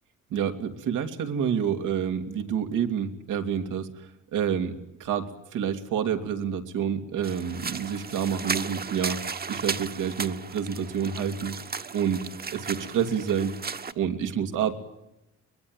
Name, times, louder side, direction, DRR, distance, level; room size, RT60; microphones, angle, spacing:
voice 1, 0.3-9.2 9.5-11.6 11.9-12.2 12.5-13.6 14.0-14.8, right 8 dB, 85° right, 6 dB, 2.9 m, -28 dB
sound 1, 7.2-13.9, right 5 dB, 30° right, 1.4 m, -35 dB
23.0 x 21.5 x 9.2 m, 0.90 s
cardioid pair, 90°, 30 cm